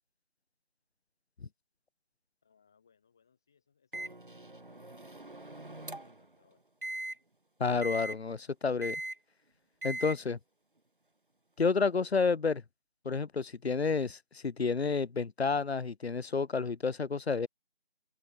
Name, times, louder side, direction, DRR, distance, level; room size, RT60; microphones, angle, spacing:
voice 1, 2.4-6.6, left 6 dB, 5° left, 3.2 m, -71 dB
Microwave oven, 3.9-6.3 6.8-7.1 7.8-8.2 8.8-9.2 9.8-10.2, right 2 dB, 55° right, 1.7 m, -40 dB
voice 2, 7.6-9.0 9.8-10.4 11.6-12.6 13.0-17.5, left 4 dB, 75° left, 0.7 m, -30 dB
open air
figure-of-eight pair, 175°, 32 cm